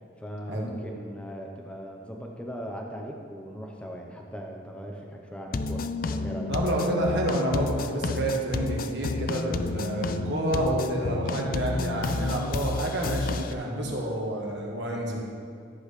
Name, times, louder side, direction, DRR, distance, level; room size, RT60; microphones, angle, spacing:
voice 1, 0.2-6.5, equal, 5° left, 0 dB, 0.9 m, -39 dB
sound 1, 5.5-13.5, left 3 dB, 45° left, 0.4 m, -30 dB
voice 2, 6.5-15.2, right 1 dB, 65° right, -1 dB, 1.6 m, -29 dB
13.5 x 7.9 x 3.3 m, 2.3 s
head